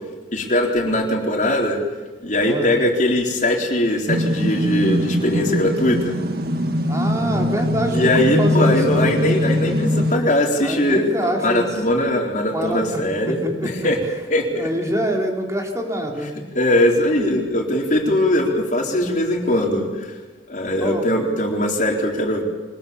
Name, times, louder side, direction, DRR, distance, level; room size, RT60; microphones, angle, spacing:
voice 1, 0.3-1.8 2.2-6.2 7.9-14.0 14.3-14.7 16.5-20.2 20.5-22.4, left 1 dB, 45° left, 1 dB, 3.9 m, -20 dB
sound 1, 4.1-10.2, left 1 dB, 55° right, 2.0 m, -21 dB
voice 2, 6.9-9.1 10.6-11.7 12.5-13.0 13.3-13.9 14.5-16.3 20.8-21.1, equal, 15° right, 1 dB, 3.5 m, -25 dB
24.5 x 20.5 x 7.1 m, 1.3 s
head